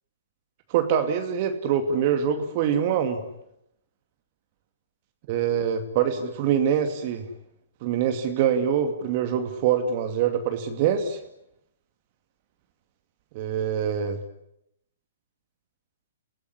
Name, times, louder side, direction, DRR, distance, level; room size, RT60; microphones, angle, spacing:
voice 1, 0.7-3.2 5.3-7.3 7.8-11.2 13.3-14.2, right 8 dB, 45° right, 6 dB, 2.6 m, -24 dB
29.0 x 17.0 x 9.8 m, 0.81 s
hypercardioid pair, 130°, 0 cm